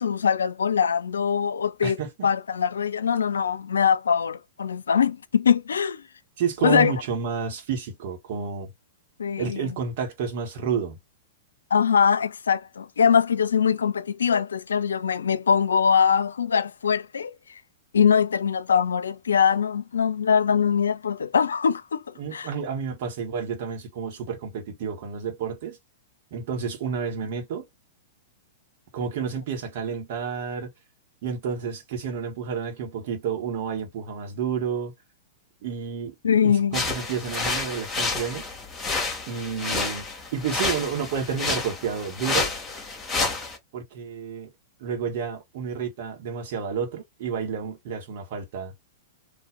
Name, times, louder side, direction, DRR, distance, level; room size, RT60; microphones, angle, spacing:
voice 1, 0.0-2.0 2.2-6.0 6.6-6.9 9.2-9.7 11.7-17.3 17.9-22.0 22.3-22.5 36.2-36.8, left 7 dB, 75° left, 0.5 m, -22 dB
voice 2, 1.8-2.3 6.4-8.7 9.4-11.0 22.2-25.8 26.3-27.7 28.9-30.7 31.2-34.9 35.6-36.2 36.4-38.4 39.3-40.1 40.3-42.5 43.7-44.5 44.8-48.7, right 6 dB, 50° right, 2.1 m, -30 dB
sound 1, 36.7-43.6, left 3 dB, 15° left, 2.5 m, -29 dB
4.3 x 3.2 x 3.7 m
figure-of-eight pair, 105°, 0 cm